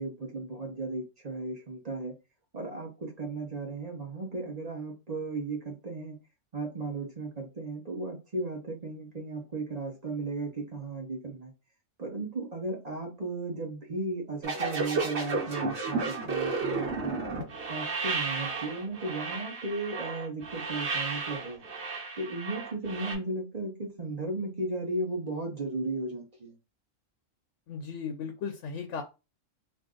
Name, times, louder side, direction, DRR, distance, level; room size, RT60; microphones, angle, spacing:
voice 1, 0.0-2.1 2.5-6.2 6.5-11.5 12.0-17.2 17.7-21.6 22.1-26.6, right 2 dB, 35° right, 1 dB, 0.8 m, -35 dB
sound 1, 14.4-23.1, right 4 dB, 60° right, 1.3 m, -33 dB
voice 2, 27.7-29.0, left 6 dB, 70° left, 5 dB, 0.9 m, -36 dB
2.6 x 2.5 x 3.6 m, 0.29 s
omnidirectional pair, 1.3 m